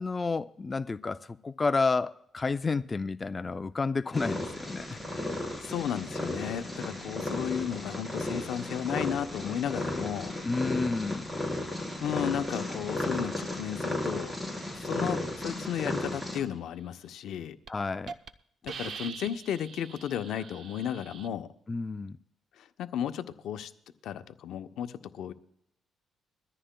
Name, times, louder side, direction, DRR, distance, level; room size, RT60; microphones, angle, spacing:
voice 1, 0.0-5.0 10.4-11.3 17.7-18.2 21.7-22.2, left 4 dB, 30° left, 0.4 m, -30 dB
Purr, 4.1-16.4, left 1 dB, 5° right, 3.9 m, -34 dB
voice 2, 5.6-10.4 12.0-14.3 14.7-17.6 18.6-21.5 22.6-23.7 24.0-25.3, left 9 dB, 75° left, 0.7 m, -34 dB
Hiss, 17.1-17.3 17.7-17.8 18.1-18.3 18.7-21.3, right 6 dB, 60° right, 0.7 m, -43 dB
22.0 x 14.0 x 2.2 m
cardioid pair, 90°, 0 cm